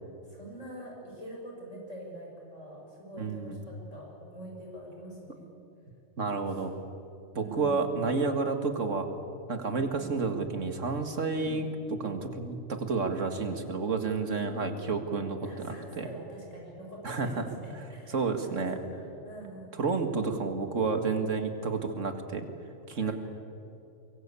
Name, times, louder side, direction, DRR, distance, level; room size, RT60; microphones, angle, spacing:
voice 1, 0.3-5.5 6.5-6.6 7.3-8.0 9.6-10.2 11.4-11.6 13.1-13.7 14.4-14.8 15.4-17.4 17.6-19.9 23.0-23.1, right 1 dB, 70° left, -1 dB, 7.3 m, -45 dB
voice 2, 3.2-3.6 6.2-6.7 7.4-9.1 9.5-11.7 12.0-16.1 17.0-17.5 18.1-18.7 19.8-22.5 22.9-23.1, right 4 dB, 70° right, 6 dB, 2.2 m, -30 dB
23.5 x 23.5 x 8.5 m, 2.7 s
omnidirectional pair, 1.3 m